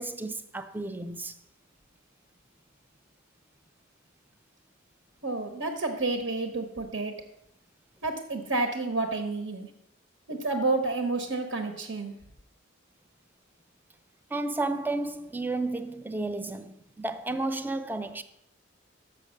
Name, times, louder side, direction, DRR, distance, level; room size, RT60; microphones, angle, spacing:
voice 1, 0.0-1.4 14.3-18.2, right 2 dB, 10° right, 0.4 m, -32 dB
voice 2, 5.2-7.1 8.0-9.7 10.3-12.1, right 3 dB, 75° right, 1.1 m, -30 dB
6.7 x 6.5 x 6.4 m
head